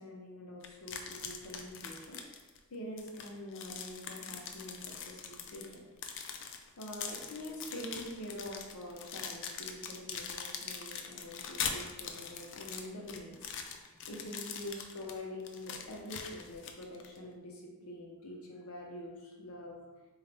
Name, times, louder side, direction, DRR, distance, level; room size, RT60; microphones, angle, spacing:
voice 1, 0.0-2.2 2.7-4.8 5.1-5.8 6.8-13.5 13.8-19.8, left 1 dB, 85° left, -1 dB, 0.8 m, -45 dB
sound 1, 0.6-2.6 3.0-17.2, left 6 dB, 55° left, 0.3 m, -42 dB
3.8 x 2.4 x 3.3 m, 1.2 s
head